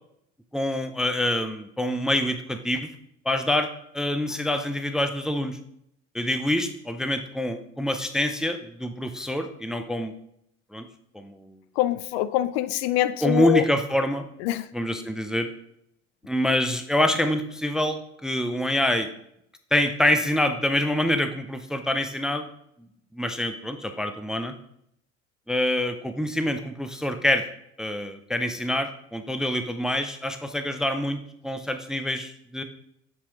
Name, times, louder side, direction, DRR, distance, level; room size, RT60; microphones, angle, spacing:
voice 1, 0.5-2.9 3.3-5.6 6.1-10.1 10.7-10.9 11.1-11.6 13.2-14.3 14.7-15.5 16.2-19.1 19.7-22.4 23.1-24.5 25.5-27.4 27.8-32.6, left 1 dB, ahead, 8 dB, 0.4 m, -26 dB
voice 2, 11.8-13.6 14.4-14.6, left 14 dB, 55° left, 15 dB, 0.4 m, -24 dB
8.8 x 4.6 x 2.9 m, 0.74 s
figure-of-eight pair, 65°, 39 cm